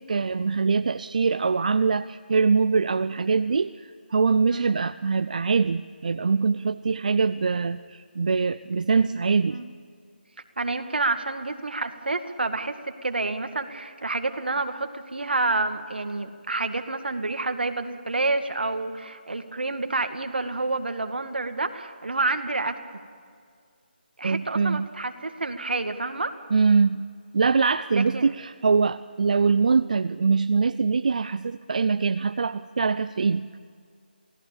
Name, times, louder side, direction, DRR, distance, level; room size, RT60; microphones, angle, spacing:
voice 1, 0.0-9.6 24.2-24.9 26.5-27.0 27.3-33.4, right 4 dB, 50° right, 13 dB, 0.5 m, -23 dB
voice 2, 10.6-22.8 24.2-26.3 27.9-28.3, right 3 dB, 75° right, 7 dB, 2.2 m, -28 dB
27.5 x 18.0 x 7.2 m, 2.2 s
figure-of-eight pair, 170°, 5 cm